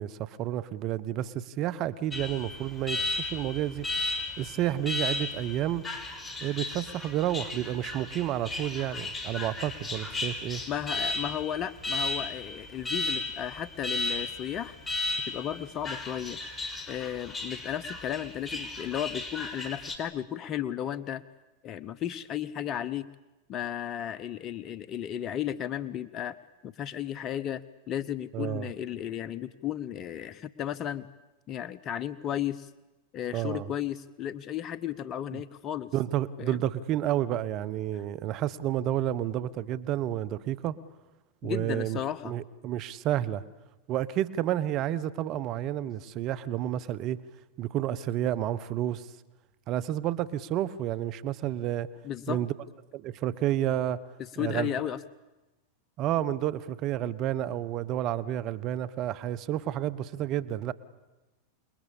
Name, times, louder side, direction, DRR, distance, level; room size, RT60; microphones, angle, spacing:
voice 1, 0.0-3.9 4.4-5.8 6.4-10.6 28.3-28.7 33.3-33.7 35.3-35.4 35.9-40.7 41.4-42.0 42.2-43.4 43.9-47.2 47.6-49.1 49.7-51.9 52.3-52.5 52.9-54.0 54.4-54.7 56.0-60.7, right 12 dB, 45° right, 15 dB, 1.2 m, -30 dB
Alarm, 2.1-20.0, left 3 dB, 20° left, 4.5 m, -35 dB
voice 2, 10.7-14.8 15.3-16.4 16.9-21.2 21.6-23.1 23.5-26.4 26.6-31.1 31.5-32.7 33.1-35.9 36.4-36.6 41.4-42.3 52.0-52.4 54.4-55.0, left 10 dB, 40° left, 17 dB, 0.9 m, -34 dB
28.5 x 21.0 x 8.6 m, 1.1 s
hypercardioid pair, 95°, 0 cm